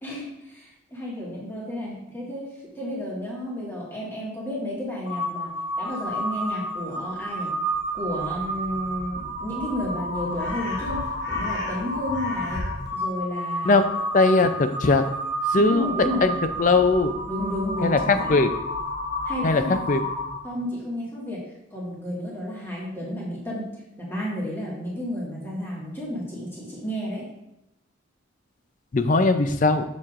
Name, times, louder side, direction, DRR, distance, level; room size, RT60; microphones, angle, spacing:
voice 1, 0.0-7.5 7.9-12.6 12.9-13.9 15.6-16.3 17.3-18.4 19.2-19.8 20.4-21.4 21.7-23.7 24.0-27.3, left 1 dB, 10° left, -6 dB, 1.8 m, -32 dB
Crow, 5.1-20.6, equal, 55° left, 1.3 m, -30 dB
voice 2, 13.6-15.0 15.5-16.3 16.6-17.1 17.8-18.0 18.3-18.5 19.4-20.0 28.9-29.8, left 3 dB, 40° left, 9 dB, 0.4 m, -20 dB
7.1 x 6.3 x 2.5 m, 0.85 s
head